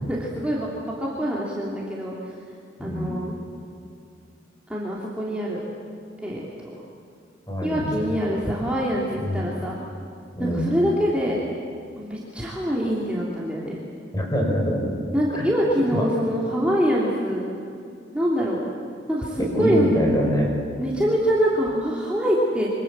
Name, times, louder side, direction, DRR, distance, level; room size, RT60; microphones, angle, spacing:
voice 1, 0.1-0.7 1.0-2.3 2.8-3.3 4.7-5.6 6.2-6.4 7.6-9.8 10.4-11.4 12.0-13.8 15.1-17.4 18.1-18.6 19.1-19.9 20.8-22.7, equal, 5° right, -5 dB, 3.0 m, -24 dB
voice 2, 2.8-3.1 7.5-8.1 9.2-9.4 10.3-10.7 14.1-14.9 15.3-15.5 15.9-16.1 19.4-20.5, equal, 20° left, -1 dB, 6.4 m, -24 dB
27.0 x 25.0 x 7.6 m, 2.4 s
head